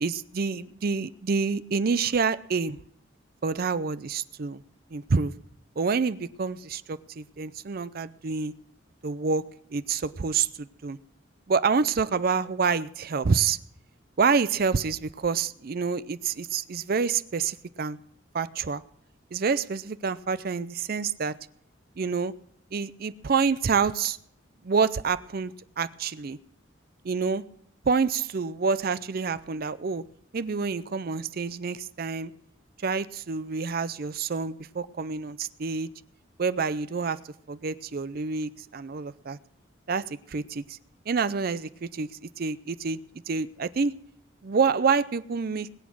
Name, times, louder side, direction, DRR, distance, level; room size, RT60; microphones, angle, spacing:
voice 1, 0.0-2.8 3.4-4.6 4.9-5.3 5.8-8.5 9.0-9.4 9.7-11.0 11.5-13.6 14.2-18.0 18.3-18.8 19.3-21.3 22.0-22.3 22.7-24.2 24.6-26.4 27.0-27.4 27.9-30.0 30.3-32.3 32.8-35.9 36.4-37.2 37.5-39.4 39.9-40.8 41.1-42.1 42.4-43.0 43.3-43.9 44.4-45.7, right 5 dB, 50° right, 15 dB, 0.5 m, -27 dB
20.5 x 8.4 x 6.1 m, 0.70 s
head